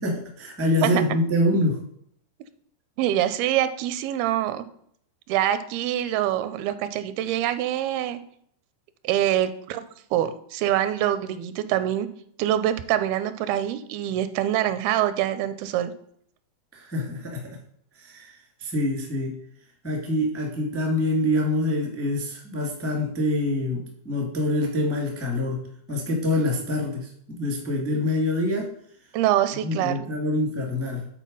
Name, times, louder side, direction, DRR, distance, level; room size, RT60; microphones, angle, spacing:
voice 1, 0.0-1.8 16.7-17.5 18.0-18.3 18.6-19.4 19.8-25.6 25.9-28.7 29.6-31.1, left 1 dB, 10° left, -1 dB, 0.7 m, -25 dB
voice 2, 3.0-4.6 5.3-8.2 9.0-9.8 10.1-12.1 12.4-15.9 29.1-30.0, right 12 dB, 85° right, 12 dB, 2.5 m, -25 dB
9.2 x 4.4 x 5.4 m, 0.66 s
omnidirectional pair, 4.3 m